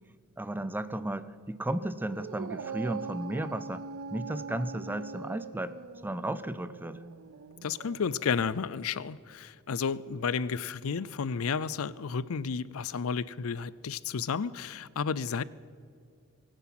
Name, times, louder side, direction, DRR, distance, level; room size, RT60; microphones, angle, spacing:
voice 1, 0.4-3.9 4.1-5.7 6.0-7.0, right 1 dB, 10° right, 15 dB, 0.5 m, -34 dB
Dog, 2.1-8.7, right 5 dB, 65° right, 0.5 m, -42 dB
voice 2, 7.6-15.4, left 6 dB, 75° left, 20 dB, 0.5 m, -32 dB
23.0 x 9.8 x 6.0 m, 2.3 s
head